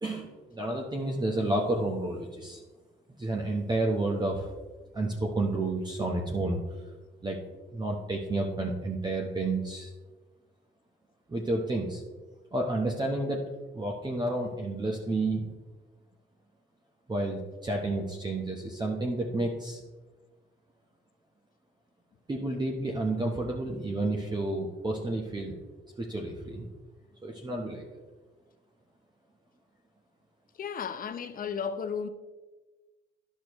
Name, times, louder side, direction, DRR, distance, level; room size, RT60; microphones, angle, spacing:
voice 1, 0.0-2.6 3.2-4.5 4.9-6.6 7.2-7.4 7.7-9.9 11.3-12.0 12.5-13.4 13.7-15.5 17.1-19.8 22.3-25.5 26.0-26.6 27.2-28.0, right 2 dB, 20° right, 1.0 m, -30 dB
voice 2, 30.6-32.1, left 6 dB, 45° left, 0.7 m, -34 dB
10.0 x 6.4 x 3.0 m
cardioid pair, 90°, 20 cm